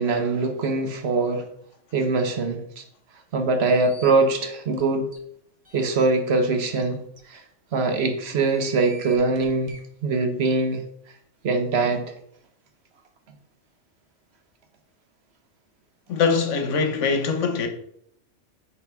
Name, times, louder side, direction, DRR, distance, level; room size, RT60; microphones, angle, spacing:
voice 1, 0.0-1.5 1.9-2.8 3.3-5.1 5.7-7.0 7.3-7.4 7.7-9.8 10.0-10.8 11.4-12.1, right 3 dB, 60° right, 1.0 m, -23 dB
sound 1, 3.6-4.1 4.7-4.8 5.1-5.2 5.6-6.0 6.8-6.9 7.2-7.3 8.2-9.8, right 3 dB, 35° right, 0.9 m, -46 dB
voice 2, 16.1-17.7, left 5 dB, 75° left, 1.1 m, -22 dB
5.8 x 4.0 x 4.4 m
omnidirectional pair, 1.3 m